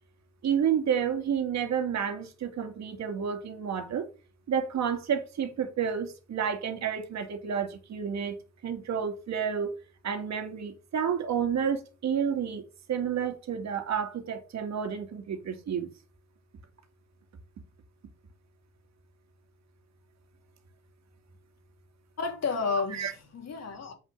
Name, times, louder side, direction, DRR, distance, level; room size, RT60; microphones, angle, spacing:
voice 1, 0.4-4.1 4.5-8.4 8.6-9.7 10.0-12.6 12.9-15.9 22.9-23.1, right 7 dB, 60° right, 2.3 m, -30 dB
voice 2, 22.2-23.9, left 4 dB, 60° left, 3.2 m, -31 dB
8.0 x 5.6 x 6.5 m
cardioid pair, 90°, 30 cm